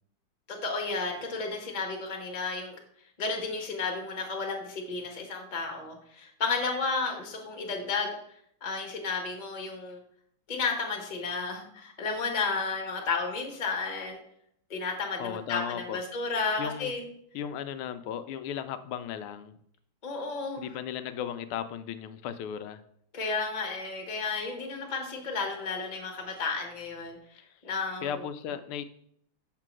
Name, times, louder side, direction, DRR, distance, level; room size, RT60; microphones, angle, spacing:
voice 1, 0.5-2.8 3.2-8.1 8.6-10.0 10.5-14.2 14.7-17.0 20.0-20.6 23.1-28.1, left 4 dB, 25° left, 1 dB, 1.0 m, -32 dB
voice 2, 15.2-16.0 16.6-16.9 17.3-19.6 20.6-22.8 28.0-28.8, left 9 dB, 80° left, 11 dB, 1.5 m, -36 dB
6.7 x 3.8 x 6.2 m, 0.69 s
omnidirectional pair, 2.4 m